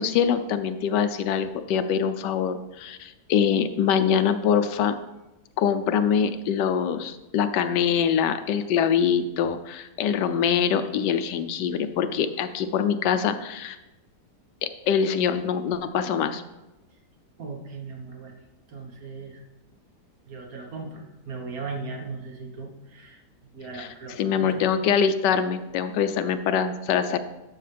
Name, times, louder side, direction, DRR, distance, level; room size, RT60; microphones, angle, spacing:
voice 1, 0.0-4.9 5.6-13.8 14.6-16.4 23.8-23.9 24.2-27.2, left 7 dB, 80° left, 10 dB, 1.2 m, -24 dB
voice 2, 17.4-18.3 18.7-19.4 20.3-23.2 23.5-24.6, right 4 dB, 60° right, 1 dB, 1.7 m, -38 dB
12.0 x 6.3 x 3.4 m, 1.0 s
omnidirectional pair, 1.9 m